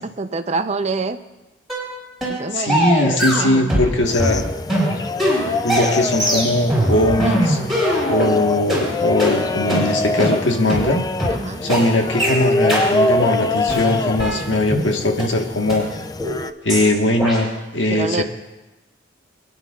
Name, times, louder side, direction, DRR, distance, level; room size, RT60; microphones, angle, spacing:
voice 1, 0.0-1.2 2.3-2.9 3.3-3.8 11.4-11.7 17.9-18.2, right 3 dB, 35° right, 10 dB, 0.5 m, -26 dB
sound 1, 1.7-1.9 2.2-2.4 2.7-3.9 4.2-8.3 8.7-8.8 9.2-9.3 9.7-9.8 10.2-10.3 10.7-10.8 11.2-11.3 11.7-11.8 12.2-12.3 12.7-12.8 13.2-13.4 13.7-14.9 15.2-15.3 15.7-15.8 16.2-16.4 16.7-16.9 17.2-17.4, equal, ahead, 5.3 m, -21 dB
voice 2, 2.5-4.4 5.6-7.6 8.1-11.0 11.6-15.9 16.6-18.2, left 1 dB, 85° left, 3 dB, 1.4 m, -20 dB
sound 2, 4.1-16.5, left 2 dB, 20° left, 0.3 m, -24 dB
24.5 x 10.5 x 2.4 m, 1.1 s
head